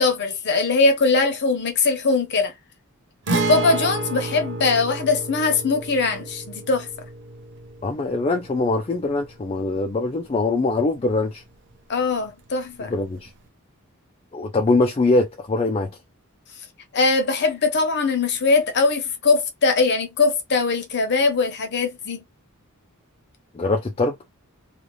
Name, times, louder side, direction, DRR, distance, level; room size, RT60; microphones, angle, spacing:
voice 1, 0.0-2.5 3.3-6.9 11.9-12.9 16.9-22.2, left 3 dB, 50° left, 0.7 m, -21 dB
Guitar, 3.3-10.9 11.2-11.3 13.3-13.4, right 3 dB, 55° right, 0.6 m, -31 dB
voice 2, 7.8-11.4 12.8-13.3 14.3-15.9 23.5-24.2, left 2 dB, 25° left, 0.3 m, -22 dB
2.6 x 2.4 x 3.1 m
head